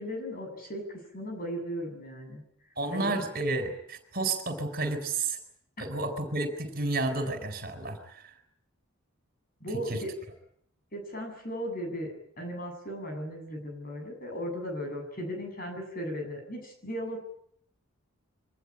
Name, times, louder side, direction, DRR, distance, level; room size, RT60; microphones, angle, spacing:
voice 1, 0.0-2.4 2.9-3.2 5.8-5.9 9.6-10.1 10.9-17.2, equal, 40° left, 4 dB, 8.0 m, -36 dB
voice 2, 2.8-5.4 5.8-8.3 9.9-10.0, right 2 dB, 45° right, 8 dB, 4.4 m, -31 dB
24.5 x 19.5 x 9.9 m, 0.68 s
head